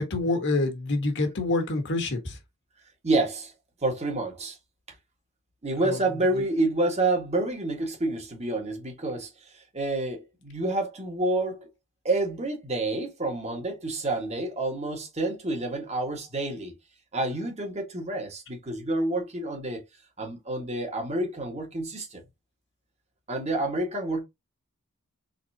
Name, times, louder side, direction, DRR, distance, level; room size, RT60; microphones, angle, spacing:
voice 1, 0.0-2.4 5.8-6.0 6.4-6.5, left 2 dB, 60° left, 1.4 m, -27 dB
voice 2, 3.0-3.5 3.8-4.6 5.6-11.7 12.0-16.7 17.1-19.8 20.2-22.2 23.3-24.2, right 2 dB, 30° right, 1.7 m, -28 dB
4.1 x 3.8 x 2.8 m
head